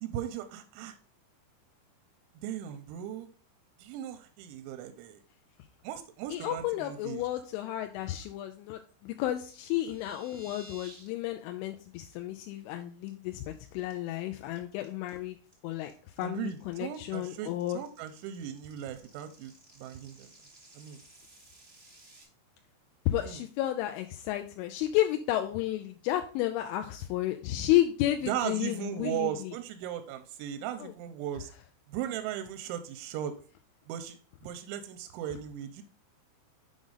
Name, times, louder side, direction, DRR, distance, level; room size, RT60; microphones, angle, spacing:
voice 1, 0.0-0.9 2.4-3.3 3.8-5.2 5.8-7.2 16.2-20.3 20.8-21.0 23.2-23.5 28.3-31.5 31.9-33.3 33.9-35.8, right 10 dB, 90° right, 9 dB, 3.0 m, -37 dB
voice 2, 6.3-15.4 15.6-15.9 16.2-17.8 23.1-29.5 30.8-30.9, left 14 dB, 85° left, 5 dB, 3.0 m, -32 dB
sound 1, 9.4-11.1 11.4-11.6 12.0-12.1 12.5-12.7 13.1-13.5 13.9-22.2, right 1 dB, 55° right, 0.6 m, -55 dB
7.5 x 5.2 x 3.8 m, 0.40 s
omnidirectional pair, 5.4 m